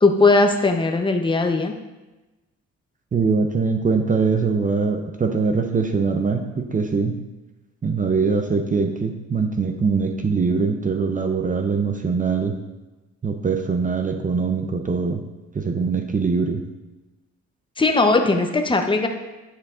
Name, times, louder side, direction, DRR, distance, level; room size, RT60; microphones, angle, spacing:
voice 1, 0.0-1.7 17.8-19.1, left 3 dB, 15° left, 4 dB, 0.7 m, -18 dB
voice 2, 3.1-7.2 7.8-12.6 13.2-15.2 15.5-16.6, right 5 dB, 25° right, 4 dB, 0.6 m, -22 dB
9.5 x 5.9 x 2.4 m, 1.1 s
cardioid pair, 90°, 30 cm